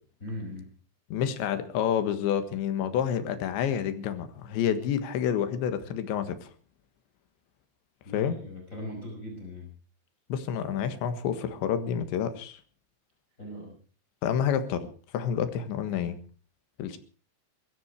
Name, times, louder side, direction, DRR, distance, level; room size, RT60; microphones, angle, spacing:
voice 1, 0.2-0.7 8.0-9.7 13.4-13.8, left 1 dB, 15° left, 1 dB, 5.4 m, -39 dB
voice 2, 1.1-6.5 8.1-8.4 10.3-12.6 14.2-14.9 15.1-16.2 16.8-17.0, left 8 dB, 75° left, 9 dB, 3.7 m, -29 dB
23.0 x 13.5 x 4.7 m, 0.39 s
omnidirectional pair, 5.5 m